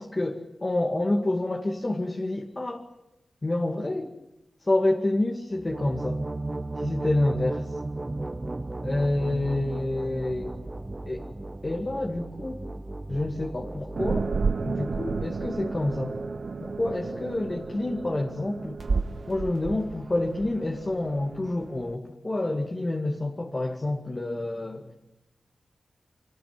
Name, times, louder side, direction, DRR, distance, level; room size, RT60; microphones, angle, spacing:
voice 1, 0.0-2.9 3.4-4.1 4.6-6.3 6.8-7.8 8.8-10.5 11.1-11.2 11.6-12.6 13.1-14.3 14.6-16.2 16.6-18.8 19.3-24.9, left 2 dB, 35° left, 1 dB, 2.2 m, -28 dB
sound 1, 5.5-16.2, right 2 dB, 25° right, 1.1 m, -35 dB
sound 2, 14.0-21.9, right 4 dB, 60° right, 1.0 m, -32 dB
24.0 x 19.0 x 9.1 m, 0.96 s
cardioid pair, 50°, 0 cm